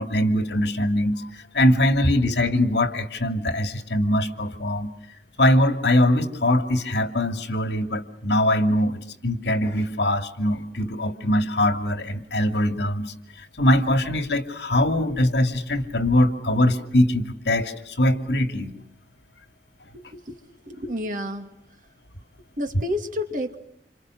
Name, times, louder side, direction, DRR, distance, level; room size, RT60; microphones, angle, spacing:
voice 1, 0.0-4.9 5.4-18.7, left 1 dB, 75° left, 8 dB, 2.5 m, -22 dB
voice 2, 19.9-20.4 20.6-21.5 22.6-23.6, left 1 dB, 45° right, 6 dB, 2.7 m, -30 dB
29.0 x 28.0 x 6.4 m, 0.79 s
head